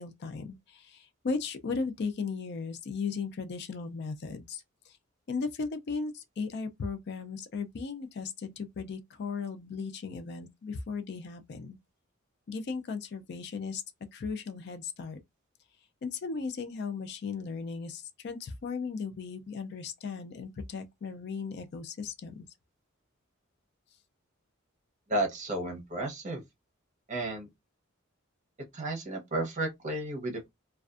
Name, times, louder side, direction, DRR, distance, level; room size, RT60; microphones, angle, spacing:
voice 1, 0.0-4.9 5.3-11.8 12.5-13.8 14.1-15.2 16.0-22.4, left 5 dB, 55° left, 0.4 m, -36 dB
voice 2, 25.1-26.4 27.1-27.5 28.7-30.5, right 1 dB, 35° right, 0.8 m, -32 dB
2.4 x 2.3 x 2.3 m
head